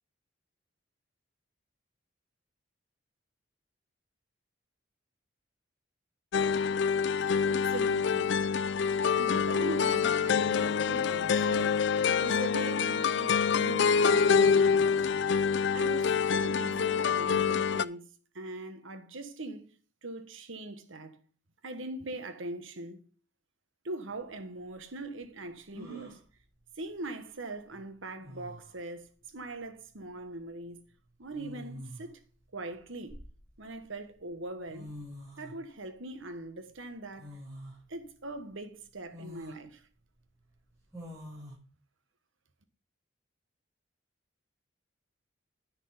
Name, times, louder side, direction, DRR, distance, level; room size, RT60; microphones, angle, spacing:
sound 1, 6.3-17.8, left 6 dB, 60° left, 0.4 m, -26 dB
voice 1, 7.4-8.4 9.1-11.9 12.2-15.1 15.7-18.0 18.3-19.7 20.0-21.2 21.6-23.0 23.8-26.2 26.8-30.8 31.2-32.2 32.5-33.2 33.6-35.0 35.4-37.4 37.9-39.9, right 2 dB, 85° right, 1.4 m, -41 dB
sound 2, 24.1-24.2 25.7-26.2 27.7-27.8 28.2-28.7 30.0-30.2 31.3-32.1 32.7-33.7 34.4-34.5 34.7-35.6 37.2-37.8 38.3-38.4 39.1-39.6 40.9-41.5, equal, 15° right, 6.5 m, -45 dB
10.0 x 6.2 x 5.2 m
head